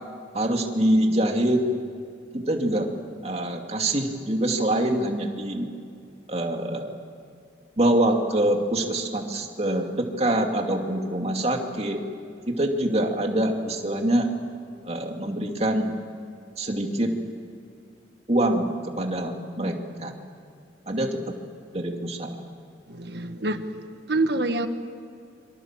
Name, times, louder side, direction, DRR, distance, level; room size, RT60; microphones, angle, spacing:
voice 1, 0.3-1.7 2.3-2.9 3.2-5.7 6.3-7.0 7.8-12.0 12.5-14.3 14.8-15.9 16.6-17.1 18.3-19.7 20.0-20.1 20.9-21.3 21.7-22.3, right 1 dB, 35° right, 3 dB, 2.5 m, -25 dB
voice 2, 22.9-24.7, right 2 dB, 60° right, 8 dB, 1.5 m, -27 dB
27.0 x 24.5 x 7.5 m, 2.4 s
head